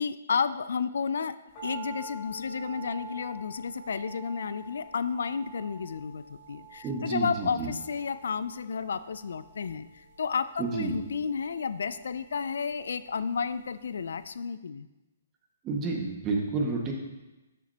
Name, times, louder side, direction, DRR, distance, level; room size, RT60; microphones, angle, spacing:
voice 1, 0.0-1.4 1.6-14.9, left 6 dB, 70° left, 13 dB, 0.4 m, -32 dB
sound 1, 1.5-13.8 14.1-14.2, right 3 dB, 30° left, 3.5 m, -47 dB
voice 2, 6.8-7.7 10.6-10.9 15.6-16.9, right 3 dB, 25° right, 0 dB, 1.7 m, -30 dB
13.0 x 6.8 x 2.9 m, 1.1 s
hypercardioid pair, 135°, 0 cm